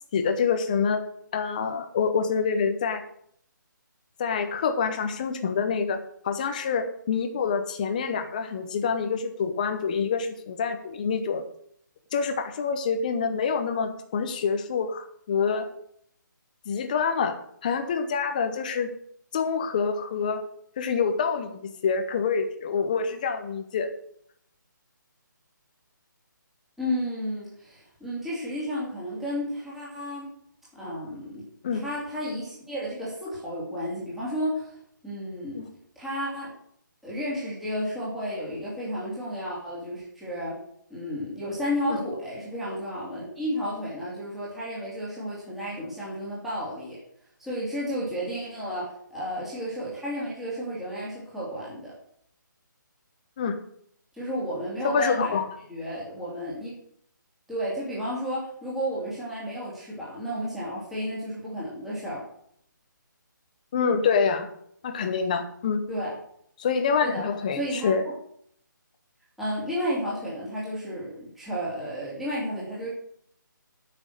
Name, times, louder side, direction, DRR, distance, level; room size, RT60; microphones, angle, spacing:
voice 1, 0.1-3.0 4.2-11.4 12.1-15.7 16.7-18.9 19.3-20.4 20.8-23.9 31.6-31.9 35.5-35.7 41.9-42.0 53.4-53.6 54.8-55.4 63.7-64.5 64.8-65.9 66.6-68.0, left 6 dB, 25° left, 7 dB, 0.9 m, -26 dB
voice 2, 26.8-30.3 30.7-31.4 31.7-34.8 35.0-35.6 36.0-36.6 37.0-40.6 40.9-47.0 47.4-51.9 54.1-55.4 55.7-56.7 57.5-62.2 65.9-66.2 67.0-67.2 67.5-67.9 69.4-72.9, equal, ahead, -9 dB, 2.7 m, -32 dB
9.0 x 6.3 x 8.0 m, 0.67 s
hypercardioid pair, 170°, 11 cm